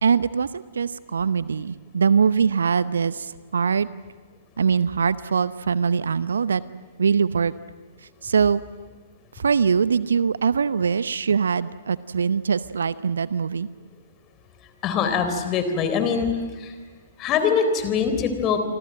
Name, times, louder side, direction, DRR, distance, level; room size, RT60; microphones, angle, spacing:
voice 1, 0.0-3.9 4.6-6.6 7.0-7.5 8.2-8.6 9.4-13.7, right 6 dB, 70° right, 16 dB, 0.8 m, -22 dB
voice 2, 14.8-16.8 17.2-18.6, left 6 dB, 25° left, 8 dB, 3.9 m, -23 dB
28.0 x 25.0 x 7.8 m, 1.4 s
figure-of-eight pair, 115°, 0 cm